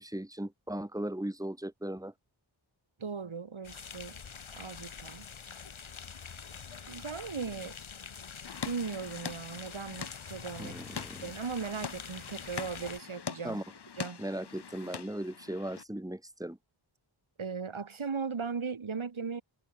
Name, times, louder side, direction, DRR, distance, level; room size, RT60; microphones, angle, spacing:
voice 1, 0.0-2.1 10.6-11.3 13.4-13.6 14.2-16.6, right 1 dB, 5° right, 3.7 m, -37 dB
voice 2, 3.0-4.2 4.6-5.3 6.9-7.8 8.6-10.8 11.2-13.6 14.0-14.2 17.4-19.4, right 5 dB, 80° right, 5.2 m, -37 dB
sound 1, 3.6-13.0, left 6 dB, 85° left, 2.7 m, -46 dB
sound 2, 8.4-15.8, left 7 dB, 55° left, 1.1 m, -43 dB
wide cardioid pair, 75°, 47 cm